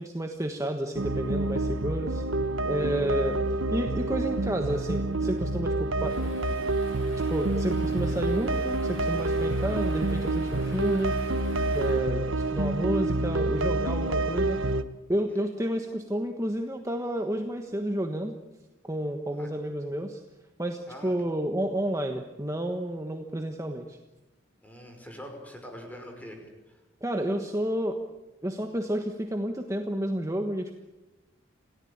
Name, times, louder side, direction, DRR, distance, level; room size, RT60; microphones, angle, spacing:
voice 1, 0.0-2.2 2.6-3.4 3.7-6.2 7.3-11.3 11.7-14.6 15.1-18.3 18.8-20.2 20.6-24.0 27.0-28.0 28.4-30.8, right 1 dB, 15° right, 4 dB, 1.4 m, -30 dB
sound 1, 0.9-14.8, right 2 dB, 80° right, 1.2 m, -28 dB
sound 2, 6.0-12.4, equal, 65° left, 7.9 m, -48 dB
voice 2, 24.6-26.8, equal, 10° left, 3 dB, 5.6 m, -44 dB
28.5 x 17.5 x 8.8 m, 1.1 s
head